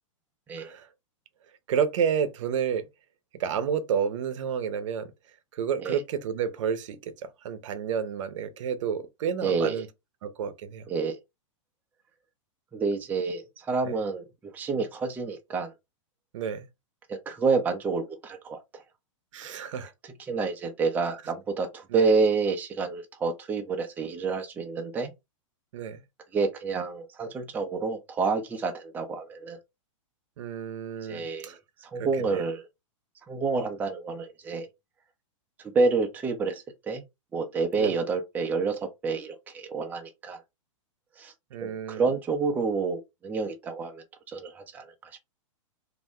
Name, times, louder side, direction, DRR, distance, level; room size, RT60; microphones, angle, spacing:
voice 1, 0.6-0.9 1.7-2.9 3.3-5.1 5.5-9.9 10.2-10.9 13.8-14.0 16.3-16.7 19.3-19.9 21.9-22.0 25.7-26.0 30.4-31.6 32.0-32.4 37.7-37.9 41.5-42.0, right 7 dB, 70° right, 0.6 m, -30 dB
voice 2, 9.4-9.8 10.9-11.2 12.7-14.3 14.5-15.7 17.1-18.8 19.4-19.6 20.3-25.1 26.3-29.6 31.0-32.7 33.3-34.7 35.6-37.0 37.3-40.4 41.2-41.3 41.6-45.2, right 4 dB, 10° right, 0.4 m, -29 dB
2.5 x 2.1 x 3.5 m
hypercardioid pair, 140°, 17 cm